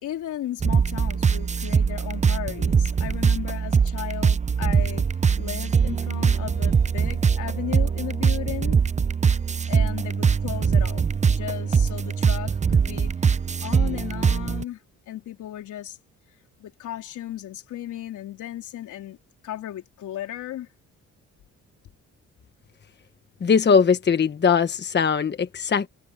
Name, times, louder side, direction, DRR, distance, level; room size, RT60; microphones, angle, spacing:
voice 1, 0.0-5.1 5.4-8.8 9.7-13.1 13.6-14.8 15.1-16.0 16.6-19.2 19.4-20.7, left 12 dB, 80° left, 3.7 m, -35 dB
sound 1, 0.6-14.6, right 6 dB, 25° right, 0.6 m, -22 dB
voice 2, 23.4-25.9, left 6 dB, 35° left, 1.2 m, -20 dB
cardioid pair, 90°, 30 cm